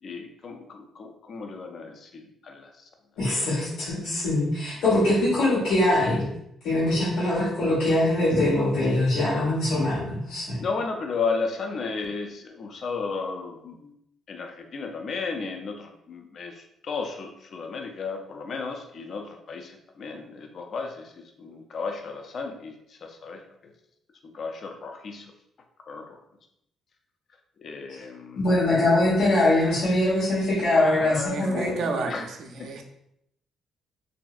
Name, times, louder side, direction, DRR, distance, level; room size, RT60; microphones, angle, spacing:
voice 1, 0.0-2.8 10.6-13.9 14.3-23.7 24.3-25.3 25.9-26.2 27.6-28.5 30.8-32.3 32.6-32.7, left 4 dB, 55° left, 4 dB, 0.4 m, -34 dB
voice 2, 3.2-6.3 6.6-10.6 28.4-31.7, left 1 dB, 90° left, -11 dB, 1.2 m, -23 dB
voice 3, 31.3-32.8, right 3 dB, 70° right, 4 dB, 0.4 m, -31 dB
3.0 x 2.6 x 2.4 m, 0.78 s
cardioid pair, 90°, 0 cm